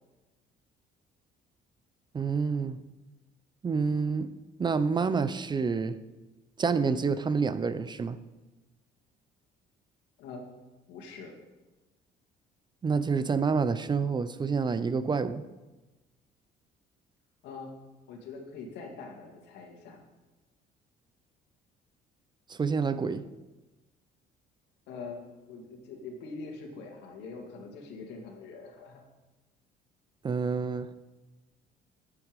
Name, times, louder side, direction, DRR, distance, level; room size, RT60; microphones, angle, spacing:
voice 1, 2.1-2.8 3.6-4.3 4.6-6.0 6.6-8.2 12.8-15.4 22.5-23.2 30.2-30.9, right 5 dB, 25° right, 13 dB, 0.5 m, -28 dB
voice 2, 10.9-11.3 17.4-17.7 18.1-20.0 24.9-25.2 25.5-29.0, left 4 dB, 85° left, 2 dB, 2.2 m, -43 dB
9.3 x 8.3 x 5.2 m, 1.1 s
cardioid pair, 110°, 17 cm